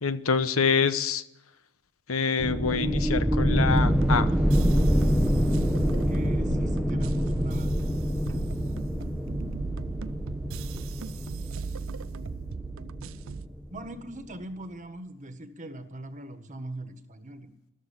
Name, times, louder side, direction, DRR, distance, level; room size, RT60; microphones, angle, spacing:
voice 1, 0.0-1.2 2.1-4.4, left 5 dB, 70° left, 0.9 m, -26 dB
sound 1, 2.4-13.8, equal, ahead, 0.8 m, -26 dB
sound 2, 3.5-13.5, right 5 dB, 60° right, 0.5 m, -38 dB
voice 2, 6.1-7.7 13.7-17.5, right 1 dB, 35° right, 1.5 m, -40 dB
14.0 x 12.5 x 7.2 m
head